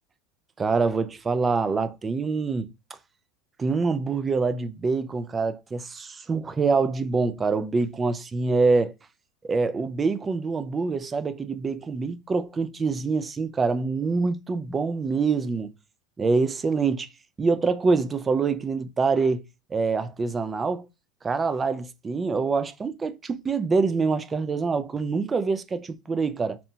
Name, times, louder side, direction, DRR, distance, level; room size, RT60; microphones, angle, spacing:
voice 1, 0.6-2.7 3.6-8.9 9.4-15.7 16.2-17.1 17.4-19.4 19.7-20.9 21.2-26.6, right 4 dB, 20° right, 0.3 m, -25 dB
2.7 x 2.1 x 2.7 m
supercardioid pair, 110°, 0 cm